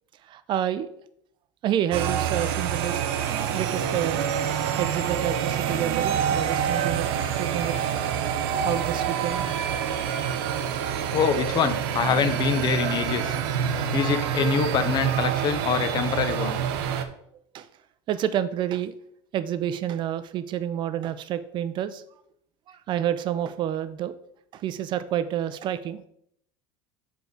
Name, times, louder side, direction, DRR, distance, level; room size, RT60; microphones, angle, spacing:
voice 1, 0.3-0.9 1.6-4.2 4.8-7.1 7.3-7.7 8.6-9.7 10.7-10.8 17.5-17.7 18.1-18.9 19.3-22.0 22.7-24.1 24.5-26.0, right 10 dB, 40° right, 13 dB, 0.5 m, -29 dB
sound 1, 1.9-17.0, right 8 dB, 85° right, 0.7 m, -27 dB
voice 2, 11.1-13.4 13.9-16.6, left 7 dB, 35° left, 11 dB, 0.6 m, -25 dB
6.9 x 4.7 x 4.0 m, 0.70 s
cardioid pair, 140°, 12 cm